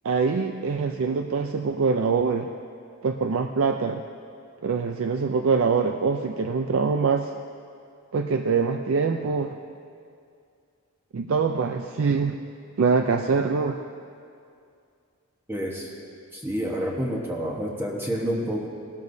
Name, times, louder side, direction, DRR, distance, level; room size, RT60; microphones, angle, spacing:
voice 1, 0.0-2.5 3.0-4.0 4.6-7.3 8.1-9.6 11.1-12.4 12.8-13.8, right 5 dB, 60° right, 5 dB, 0.4 m, -24 dB
voice 2, 15.5-15.9 16.3-18.7, equal, 10° right, -2 dB, 1.0 m, -28 dB
18.0 x 13.0 x 2.7 m, 2.4 s
head